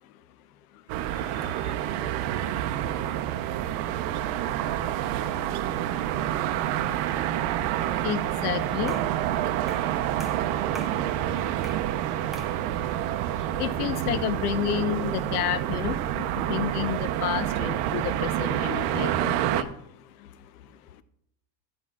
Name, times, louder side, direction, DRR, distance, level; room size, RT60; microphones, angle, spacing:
sound 1, 0.9-19.6, right 12 dB, 45° right, 0.7 m, -28 dB
voice 1, 1.1-1.8 8.0-9.0 10.0-10.1 13.0-19.7 20.1-20.7, left 11 dB, 65° left, 14 dB, 0.9 m, -31 dB
sound 2, 8.9-9.2 9.7-9.9 10.2-11.0 11.6-11.9 12.3-12.6, equal, ahead, 0.5 m, -43 dB
13.0 x 8.0 x 3.7 m, 0.71 s
supercardioid pair, 155°, 48 cm